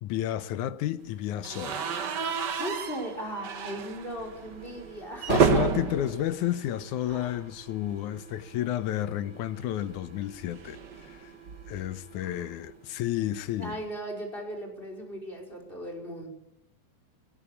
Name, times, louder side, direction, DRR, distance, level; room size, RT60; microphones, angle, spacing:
voice 1, 0.0-1.8 5.3-11.3 11.7-13.8, left 12 dB, 75° left, 2.2 m, -31 dB
sound 1, 0.9-13.0, right 7 dB, 15° right, 3.7 m, -53 dB
sound 2, 1.4-7.5 7.8-8.0 8.2-8.3 9.6-11.9, right 6 dB, 65° right, 1.0 m, -31 dB
voice 2, 1.7-5.7 7.1-7.4 12.2-12.5 13.6-16.3, equal, 15° left, 5.1 m, -38 dB
20.0 x 16.5 x 8.7 m
omnidirectional pair, 3.7 m